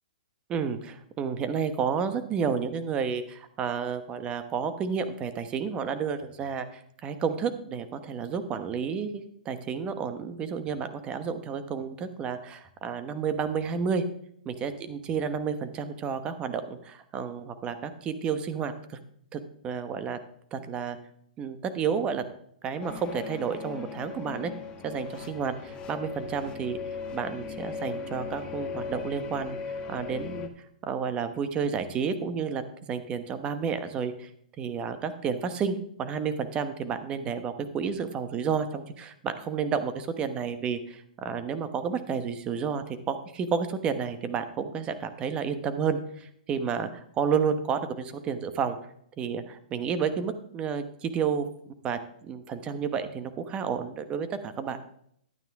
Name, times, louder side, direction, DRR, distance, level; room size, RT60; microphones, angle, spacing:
voice 1, 0.5-14.0 14.4-19.0 19.3-20.2 20.5-21.0 21.4-22.3 22.6-24.5 24.8-26.8 27.1-29.6 29.9-30.5 30.8-32.6 32.9-34.3 34.6-48.7 49.2-51.5 51.8-54.8, right 6 dB, 20° right, 10 dB, 1.0 m, -31 dB
sound 1, 22.8-30.5, left 5 dB, 25° left, 1.3 m, -38 dB
12.0 x 9.2 x 3.5 m, 0.67 s
hypercardioid pair, 140°, 5 cm